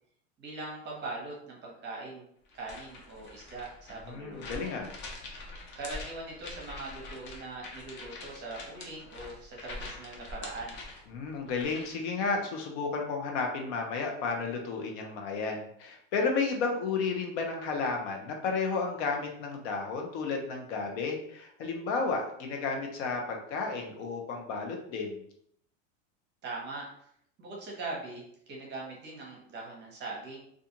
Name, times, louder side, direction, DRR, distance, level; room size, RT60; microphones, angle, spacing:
voice 1, 0.4-2.2 2.5-4.7 5.8-10.8 26.4-26.9 27.4-30.4, right 3 dB, 30° right, -2 dB, 0.9 m, -41 dB
sound 1, 2.5-12.0, left 2 dB, 30° left, 0.5 m, -45 dB
voice 2, 4.1-4.9 11.1-25.2, left 4 dB, 65° left, 2 dB, 0.7 m, -32 dB
2.4 x 2.4 x 2.8 m, 0.69 s
supercardioid pair, 135°, 38 cm